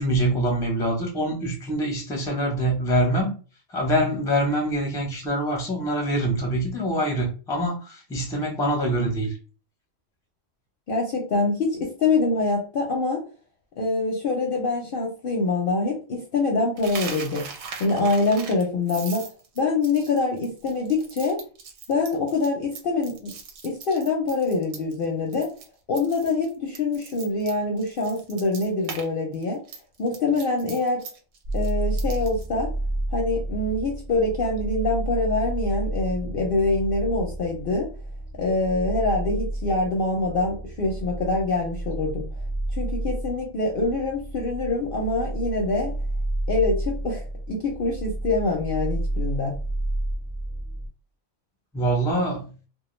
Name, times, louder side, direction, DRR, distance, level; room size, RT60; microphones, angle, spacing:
voice 1, 0.0-3.3 3.7-9.3 51.7-52.5, right 1 dB, 5° left, 0.4 m, -24 dB
voice 2, 10.9-13.2 13.8-17.5 17.8-19.3 19.6-21.4 21.9-23.3 23.6-25.5 25.9-29.6 30.0-31.1 31.5-32.7 33.1-37.9 38.4-42.3 42.7-46.0 46.5-49.5, left 3 dB, 60° left, 0.6 m, -25 dB
Coin (dropping), 16.8-25.0 25.3-25.7 25.9-29.1 29.3-32.5, right 5 dB, 70° right, 0.8 m, -40 dB
sound 1, 31.4-50.9, right 1 dB, 90° right, 0.3 m, -30 dB
2.2 x 2.1 x 3.0 m
omnidirectional pair, 1.3 m